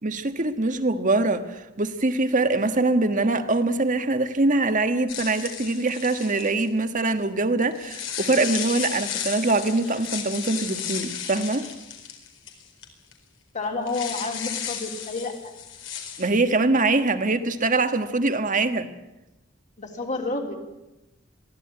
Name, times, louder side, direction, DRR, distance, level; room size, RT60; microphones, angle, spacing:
voice 1, 0.0-11.7 16.2-18.9, right 2 dB, 40° right, 9 dB, 1.5 m, -23 dB
vhs tape, 5.1-6.7 7.7-12.8 13.1-13.2 13.9-16.3, left 8 dB, 70° left, 4.3 m, -34 dB
voice 2, 13.5-15.5 19.8-20.6, left 3 dB, 40° left, 2 dB, 3.3 m, -30 dB
22.5 x 15.5 x 9.8 m, 0.97 s
head